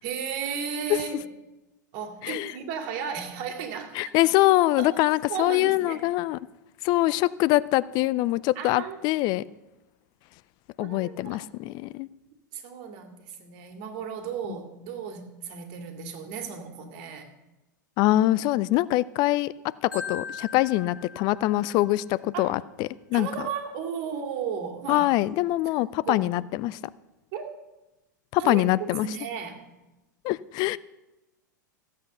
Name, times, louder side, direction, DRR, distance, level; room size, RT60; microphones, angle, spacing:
voice 1, 0.0-1.3 1.9-4.1 4.8-5.0 5.3-6.0 8.6-9.0 10.8-11.4 12.5-17.3 22.3-22.6 23.1-25.3 26.0-26.3 27.3-27.5 28.4-29.6, right 7 dB, 50° right, 5 dB, 2.4 m, -34 dB
voice 2, 3.9-6.4 6.8-9.5 10.8-12.1 18.0-19.5 19.8-23.3 24.9-26.8 28.3-29.1 30.2-30.8, left 17 dB, 45° left, 19 dB, 0.4 m, -24 dB
Marimba xylophone, 19.9-22.0, left 5 dB, 80° left, 5.4 m, -40 dB
15.0 x 8.4 x 6.6 m, 1.0 s
hypercardioid pair, 95°, 10 cm